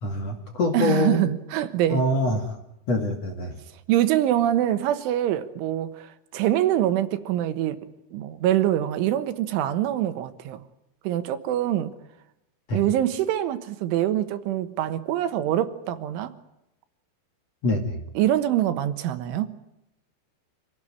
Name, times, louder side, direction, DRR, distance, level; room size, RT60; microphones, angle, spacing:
voice 1, 0.0-1.2 1.9-2.6 2.9-3.6 12.7-12.8 17.6-18.0, left 1 dB, 40° left, 2.6 m, -25 dB
voice 2, 0.7-2.0 3.9-7.8 8.1-10.6 11.1-11.9 12.7-16.3 18.2-19.6, right 12 dB, 75° right, 3.5 m, -24 dB
27.5 x 18.0 x 9.9 m
omnidirectional pair, 5.8 m